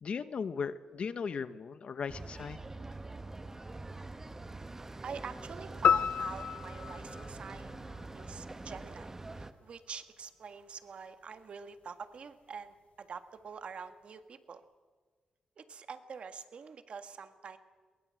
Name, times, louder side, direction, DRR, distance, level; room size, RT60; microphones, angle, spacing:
voice 1, 0.0-2.6, left 6 dB, 60° left, 13 dB, 1.2 m, -37 dB
sound 1, 2.1-9.5, right 2 dB, 20° right, 1.3 m, -44 dB
voice 2, 5.0-7.8 8.1-14.6 15.6-17.6, right 6 dB, 60° right, 9 dB, 1.8 m, -46 dB
sound 2, 5.8-8.3, left 7 dB, 85° left, 0.6 m, -31 dB
22.5 x 20.5 x 7.7 m, 1.4 s
cardioid pair, 100°, 2 cm